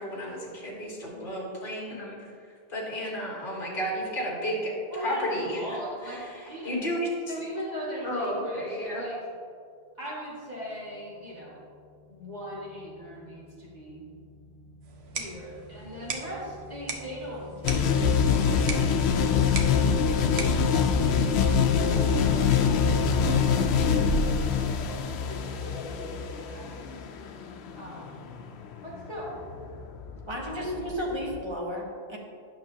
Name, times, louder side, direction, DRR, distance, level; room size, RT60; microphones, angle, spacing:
voice 1, 0.0-2.3 2.7-4.7 5.0-5.6 6.7-7.0 8.0-9.0, equal, 55° left, -3 dB, 1.7 m, -32 dB
voice 2, 4.9-6.8 7.3-9.2 10.0-11.6 12.1-14.0 15.1-21.1 21.8-22.0 22.6-26.7 27.8-28.3 28.8-29.4 30.5-30.8, equal, 45° right, -7 dB, 2.2 m, -40 dB
sound 1, 11.0-20.7, left 3 dB, 35° left, 0.8 m, -46 dB
sound 2, 14.8-21.8, right 4 dB, 90° right, 1.1 m, -40 dB
sound 3, 17.6-31.4, left 6 dB, 85° left, 0.8 m, -25 dB
voice 3, 30.3-32.2, equal, 25° right, -2 dB, 1.3 m, -33 dB
10.5 x 6.2 x 2.8 m, 2.3 s
omnidirectional pair, 1.1 m